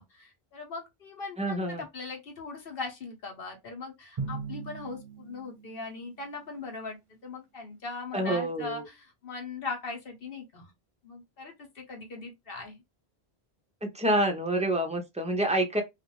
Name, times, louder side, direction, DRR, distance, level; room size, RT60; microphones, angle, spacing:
voice 1, 0.0-10.7 11.0-12.8, left 3 dB, 65° left, 1.1 m, -40 dB
voice 2, 1.4-1.8 8.1-8.8 13.8-15.8, right 1 dB, 10° right, 0.4 m, -27 dB
Drum, 4.2-6.3, right 5 dB, 35° right, 0.7 m, -39 dB
2.5 x 2.4 x 2.9 m
omnidirectional pair, 1.1 m